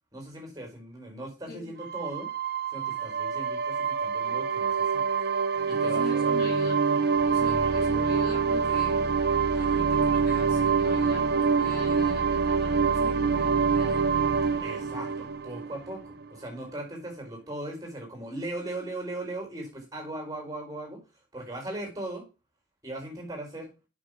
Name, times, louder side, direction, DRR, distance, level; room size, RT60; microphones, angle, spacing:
voice 1, 0.1-2.3 2.7-5.0 5.6-7.0 7.5-8.1 14.6-21.0 21.3-22.3 22.8-23.7, right 1 dB, 20° right, 4.6 m, -39 dB
sound 1, 1.8-16.2, right 5 dB, 55° right, 0.8 m, -25 dB
voice 2, 5.7-6.8 7.2-9.0 9.5-14.9, left 2 dB, 55° left, 3.3 m, -42 dB
7.7 x 6.4 x 5.1 m
head